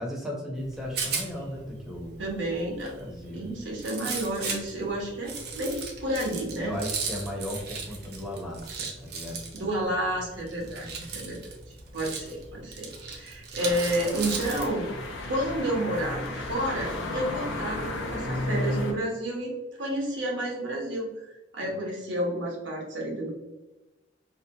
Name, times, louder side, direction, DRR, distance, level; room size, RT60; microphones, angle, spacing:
voice 1, 0.0-2.1 2.9-3.5 6.6-9.4 10.7-11.1 21.6-21.7, equal, ahead, -3 dB, 0.6 m, -36 dB
Rattle, 0.6-14.7, right 4 dB, 60° right, 0.5 m, -37 dB
voice 2, 2.2-2.9 3.3-6.7 9.5-11.4 11.7-14.9 15.3-19.5 19.8-23.3, right 1 dB, 85° right, -2 dB, 0.8 m, -30 dB
sound 1, 13.6-18.9, left 2 dB, 90° left, 0.5 m, -33 dB
2.7 x 2.1 x 2.7 m, 1.1 s
head